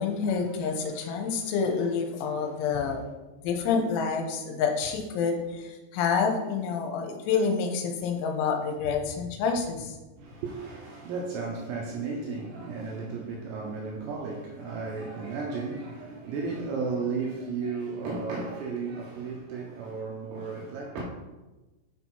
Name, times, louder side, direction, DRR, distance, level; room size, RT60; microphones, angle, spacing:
voice 1, 0.0-3.0 3.4-10.0, left 5 dB, 90° left, 3.1 m, -28 dB
voice 2, 10.2-21.0, right 4 dB, 80° right, 2.5 m, -34 dB
7.5 x 4.6 x 4.2 m
omnidirectional pair, 5.6 m